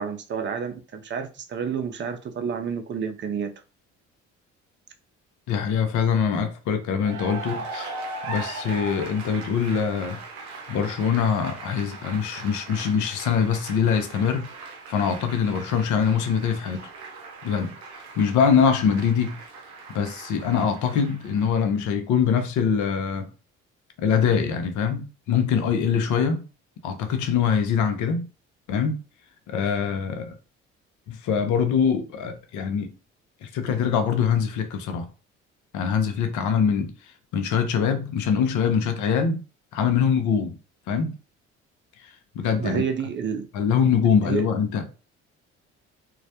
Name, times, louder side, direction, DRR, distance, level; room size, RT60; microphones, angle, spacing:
voice 1, 0.0-3.5 42.6-43.5 44.3-44.5, right 6 dB, 35° right, 0.5 m, -29 dB
voice 2, 5.5-7.9 8.3-10.2 10.7-14.5 14.9-16.8 17.4-17.7 18.2-19.4 19.9-23.3 24.0-26.4 26.8-28.3 28.7-29.0 29.5-30.4 31.1-32.9 33.4-35.1 35.7-36.9 37.3-39.4 39.7-40.6 40.9-41.2 42.3-42.8 43.5-44.9, left 7 dB, 65° left, 0.6 m, -23 dB
Cheering / Applause, 6.9-21.8, right 3 dB, 90° right, 0.6 m, -39 dB
2.3 x 2.0 x 2.7 m
hypercardioid pair, 60°, 32 cm